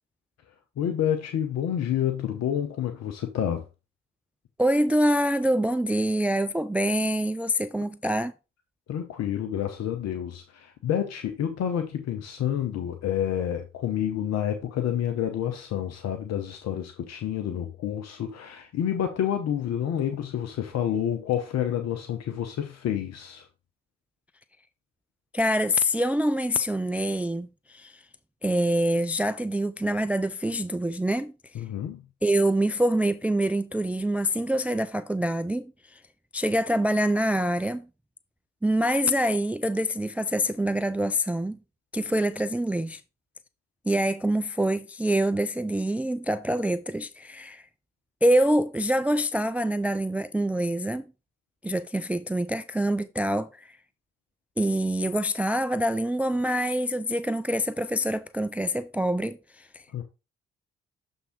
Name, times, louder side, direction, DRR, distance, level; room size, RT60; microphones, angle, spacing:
voice 1, 0.8-3.6 8.9-23.4 31.5-32.0 59.9-60.0, left 9 dB, 60° left, 0.9 m, -29 dB
voice 2, 4.6-8.3 25.3-28.0 28.4-31.3 32.2-36.0 36.3-37.9 38.6-41.6 41.9-43.0 43.9-47.6 48.2-51.0 51.6-53.7 54.6-59.8, equal, 5° right, 0.4 m, -25 dB
7.0 x 3.6 x 4.3 m
hypercardioid pair, 45°, 30 cm